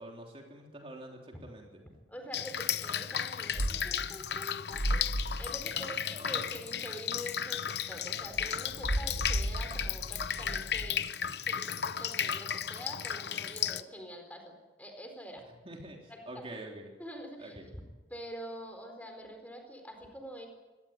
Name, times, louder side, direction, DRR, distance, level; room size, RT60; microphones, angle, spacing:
voice 1, 0.0-1.8 5.8-6.5 15.6-16.9 17.4-17.7, right 1 dB, 30° right, 1 dB, 3.4 m, -46 dB
voice 2, 2.1-14.5 14.8-15.4 16.1-16.4 17.0-17.6 18.1-20.5, equal, 10° left, 4 dB, 4.3 m, -46 dB
Drip, 2.3-13.8, left 9 dB, 65° left, 0.9 m, -34 dB
sound 1, 3.6-4.1 4.7-5.5 8.3-10.9, right 1 dB, 85° right, 1.5 m, -34 dB
23.5 x 18.5 x 8.9 m, 1.2 s
head